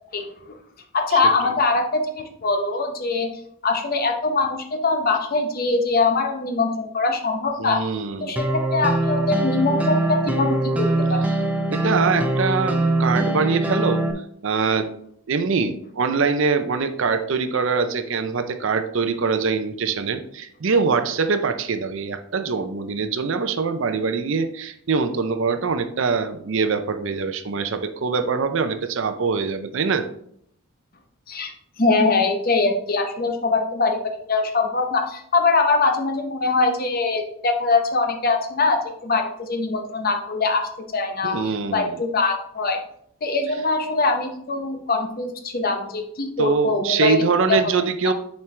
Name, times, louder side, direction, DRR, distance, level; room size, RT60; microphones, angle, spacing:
voice 1, 0.1-0.6 0.9-3.3 3.6-7.8 8.2-11.2 31.3-31.5 31.8-42.8 43.2-47.2 47.5-47.6, left 3 dB, 40° left, 5 dB, 0.8 m, -22 dB
voice 2, 1.1-1.5 7.6-8.4 11.7-14.0 14.4-14.9 15.3-30.1 41.2-42.0 46.4-48.1, right 5 dB, 60° right, 9 dB, 0.5 m, -23 dB
sound 1, 8.4-14.1, right 1 dB, 5° right, 0.6 m, -23 dB
7.1 x 4.5 x 3.2 m, 0.68 s
head